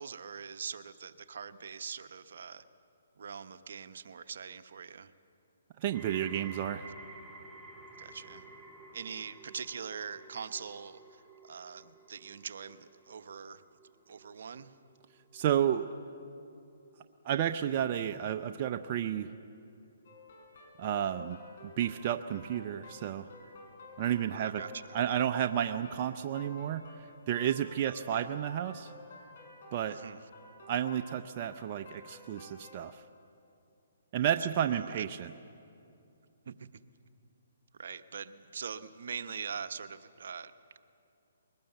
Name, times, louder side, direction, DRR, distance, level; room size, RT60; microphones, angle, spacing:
voice 1, 0.0-2.6 3.2-5.1 8.0-8.5 8.9-13.6 14.1-14.7 24.3-25.2 28.1-28.2 29.9-30.2 34.4-35.0 36.5-36.7 37.8-40.8, right 6 dB, 65° right, 10 dB, 0.9 m, -43 dB
voice 2, 5.8-6.9 15.3-15.9 17.2-19.3 20.8-21.4 21.6-23.3 24.0-24.6 24.9-28.9 29.7-30.0 30.7-33.0 34.1-35.3, right 10 dB, 35° right, 7 dB, 0.6 m, -31 dB
sound 1, 5.9-17.0 17.3-17.9 18.6-18.7, right 3 dB, ahead, 1.9 m, -52 dB
sound 2, 20.0-32.8, left 2 dB, 55° left, 6.3 m, -52 dB
21.5 x 19.0 x 8.0 m, 2.6 s
hypercardioid pair, 150°, 0 cm